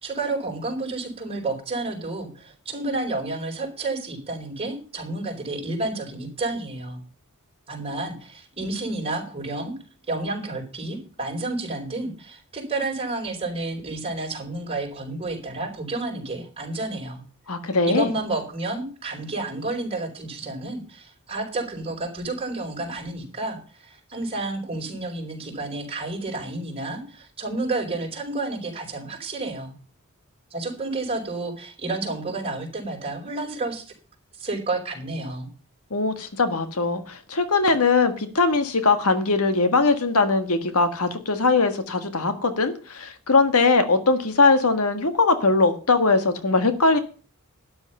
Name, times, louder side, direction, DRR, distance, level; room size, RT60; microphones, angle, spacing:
voice 1, 0.0-7.0 7.7-9.7 10.1-17.2 17.8-29.7 30.5-33.8 34.4-35.5, right 2 dB, 25° right, 1 dB, 4.5 m, -30 dB
voice 2, 17.5-18.1 35.9-47.0, left 3 dB, 75° left, 9 dB, 1.6 m, -21 dB
12.5 x 10.5 x 5.6 m, 0.39 s
head